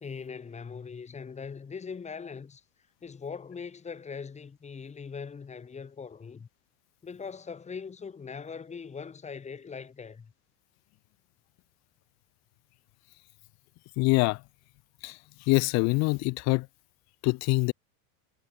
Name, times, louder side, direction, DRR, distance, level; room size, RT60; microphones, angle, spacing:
voice 1, 0.0-2.6 3.0-6.5 7.0-10.3, left 5 dB, 15° left, 1.2 m, -41 dB
voice 2, 14.0-14.4 15.0-15.2 15.5-16.7 17.2-17.7, left 26 dB, 40° left, 0.4 m, -24 dB
supercardioid pair, 110°, 45 cm